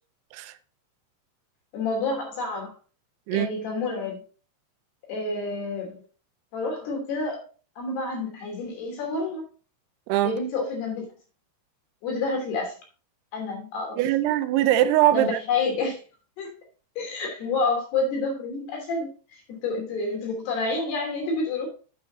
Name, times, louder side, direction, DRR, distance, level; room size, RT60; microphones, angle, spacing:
voice 1, 1.7-2.7 3.3-4.2 5.1-6.0 6.5-7.4 7.8-9.4 10.2-11.1 12.0-12.7 13.3-14.0 15.1-16.0 16.4-16.5 17.0-21.7, left 3 dB, 65° left, 4.8 m, -29 dB
voice 2, 14.0-15.4, right 13 dB, 80° right, 2.5 m, -21 dB
8.7 x 6.6 x 4.0 m
omnidirectional pair, 5.1 m